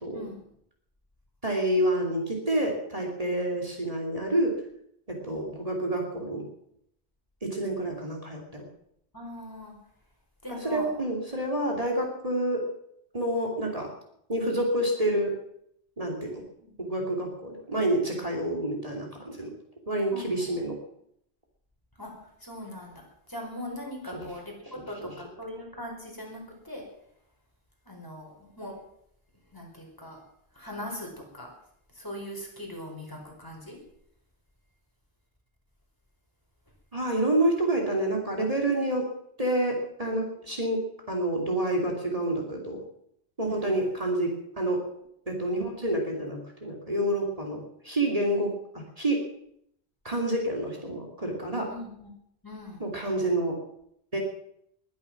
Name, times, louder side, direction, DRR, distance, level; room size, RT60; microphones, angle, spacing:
voice 1, 1.4-4.6 5.1-6.5 7.4-8.6 10.5-12.6 13.1-13.9 14.3-15.4 16.0-16.4 16.8-19.5 19.9-20.8 24.1-24.3 25.0-25.1 36.9-39.1 39.4-42.8 43.4-44.8 45.3-49.2 50.0-51.7 52.8-53.6 54.1-54.2, right 1 dB, 35° right, 1 dB, 3.0 m, -28 dB
voice 2, 9.1-9.7 10.4-10.9 16.6-16.8 20.1-20.3 22.0-22.1 22.4-23.0 23.3-26.8 27.8-28.7 29.5-30.2 30.5-31.5 31.9-33.8 43.5-43.8 51.7-52.1 52.4-52.8, left 1 dB, 20° left, 0 dB, 5.0 m, -40 dB
21.0 x 10.5 x 6.0 m, 0.73 s
omnidirectional pair, 1.1 m